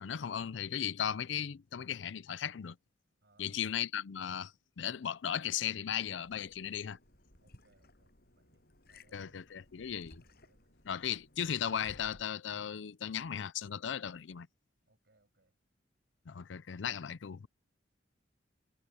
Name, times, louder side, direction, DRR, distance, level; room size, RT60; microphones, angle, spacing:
voice 1, 0.0-2.8 3.4-7.0 9.1-10.2 10.9-14.5 16.3-17.5, left 9 dB, 75° left, 0.5 m, -37 dB
voice 2, 3.2-3.6 7.4-10.0 10.3-10.8 14.9-15.6, right 2 dB, 60° right, 6.1 m, -71 dB
Liquid, 6.1-12.2, left 2 dB, 55° left, 7.9 m, -60 dB
head